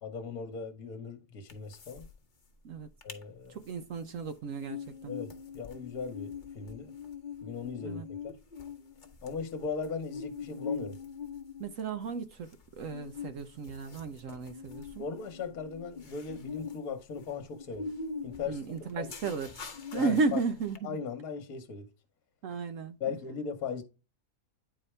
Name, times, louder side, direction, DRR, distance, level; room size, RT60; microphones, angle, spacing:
voice 1, 0.0-2.1 3.0-3.6 5.1-6.9 7.4-8.4 9.2-11.0 15.0-17.9 18.2-19.1 19.9-20.4 20.8-21.9 23.0-23.8, left 5 dB, 65° left, 1.5 m, -38 dB
sound 1, 1.5-2.1 2.4-2.5 2.8-3.2 3.6-20.8, left 5 dB, 35° left, 1.0 m, -43 dB
voice 2, 3.5-5.1 7.8-8.1 11.6-12.5 12.8-15.0 18.5-19.6 19.9-21.0 22.4-23.2, right 4 dB, 60° right, 1.0 m, -34 dB
9.8 x 4.2 x 3.2 m
omnidirectional pair, 1.7 m